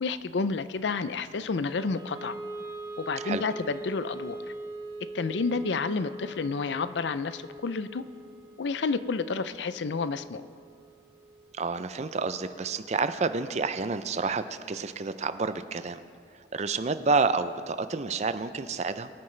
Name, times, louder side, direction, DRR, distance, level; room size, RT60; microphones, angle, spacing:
voice 1, 0.0-2.4 3.0-4.4 5.1-8.0 8.6-10.4, left 4 dB, 75° left, 13 dB, 0.5 m, -30 dB
Wind instrument woodwind instrument, 1.7-13.9, right 2 dB, 20° right, 1.2 m, -43 dB
voice 2, 11.5-16.0 16.5-19.1, right 4 dB, 40° right, 11 dB, 0.5 m, -29 dB
23.0 x 9.4 x 3.3 m, 2.3 s
head